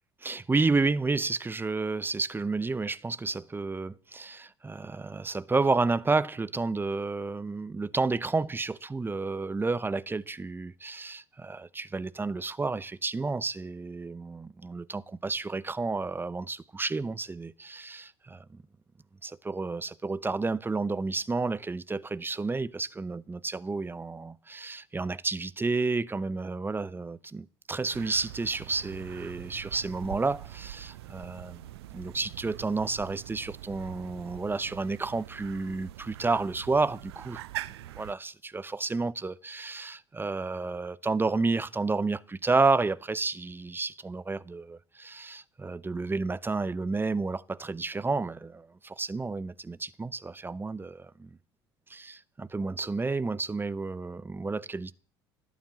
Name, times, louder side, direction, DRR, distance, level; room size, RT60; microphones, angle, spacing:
voice 1, 0.2-18.6 19.2-31.6 31.9-37.4 37.9-51.4 51.9-54.9, right 3 dB, 15° right, 0.8 m, -31 dB
sound 1, 27.9-38.1, right 15 dB, 70° right, 0.6 m, -44 dB
16.0 x 9.1 x 7.7 m
figure-of-eight pair, 65°, 14 cm